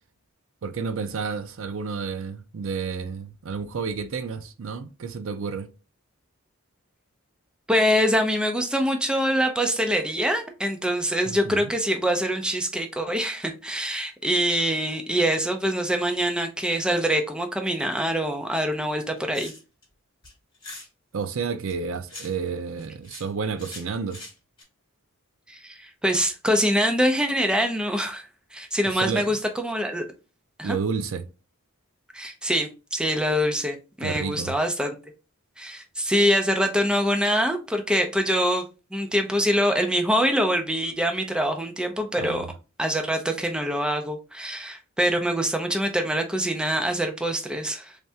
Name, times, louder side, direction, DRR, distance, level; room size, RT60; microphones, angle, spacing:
voice 1, 0.6-5.7 11.3-11.7 21.1-24.2 28.9-29.2 30.6-31.3 34.0-34.5 42.2-42.5, right 5 dB, 65° right, 0.5 m, -30 dB
voice 2, 7.7-19.5 25.5-30.1 30.6-30.8 32.1-35.0 35.6-38.6 38.9-42.5 42.8-48.0, equal, 5° right, 0.5 m, -24 dB
sound 1, 19.1-19.8 20.2-20.9 21.7-22.5 22.8-23.3 23.6-24.6, left 2 dB, 25° left, 2.0 m, -42 dB
3.4 x 3.2 x 2.7 m
head